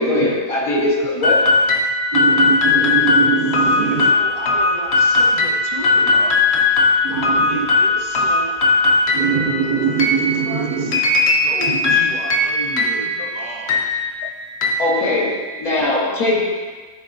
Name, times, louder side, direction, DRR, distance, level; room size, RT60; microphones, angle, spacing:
voice 1, 0.0-1.5 14.8-16.4, left 2 dB, 80° left, -6 dB, 2.0 m, -20 dB
sound 1, 1.2-15.7, left 3 dB, 55° left, 0.8 m, -18 dB
voice 2, 2.1-4.1 7.0-7.7 9.1-11.0 11.6-12.0, right 6 dB, 65° right, 2 dB, 0.4 m, -22 dB
voice 3, 3.5-6.4 7.1-8.5 10.4-10.9 11.4-13.8, right 2 dB, 90° right, -2 dB, 1.6 m, -33 dB
11.0 x 3.7 x 2.6 m, 1.4 s
omnidirectional pair, 1.5 m